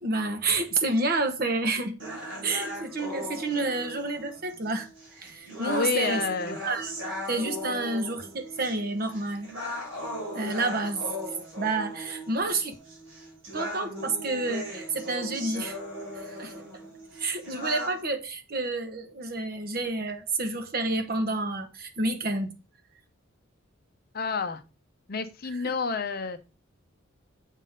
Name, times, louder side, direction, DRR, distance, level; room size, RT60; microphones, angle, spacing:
voice 1, 0.0-2.0 2.4-6.3 6.6-6.9 7.3-9.5 10.3-11.1 11.6-12.8 13.5-15.8 16.1-16.6 17.2-22.6, right 2 dB, 45° right, 1.1 m, -29 dB
sound 1, 2.0-18.0, equal, 60° right, 4.8 m, -38 dB
voice 2, 5.6-6.6 24.1-24.6 25.1-26.4, left 5 dB, 45° left, 0.7 m, -29 dB
7.3 x 3.7 x 5.5 m
head